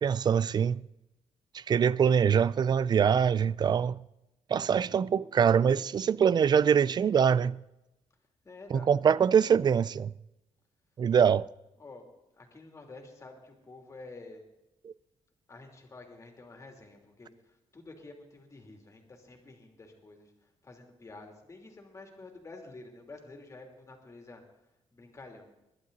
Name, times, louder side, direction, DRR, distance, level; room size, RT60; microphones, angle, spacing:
voice 1, 0.0-0.8 1.5-4.0 4.5-7.6 8.7-10.1 11.0-11.5 14.8-14.9, right 7 dB, 40° right, 0.4 m, -24 dB
voice 2, 8.4-8.9 11.8-12.0 12.3-14.4 15.5-24.4 24.9-25.5, left 3 dB, 25° left, 2.9 m, -49 dB
21.0 x 11.5 x 4.0 m
cardioid pair, 140°, 11 cm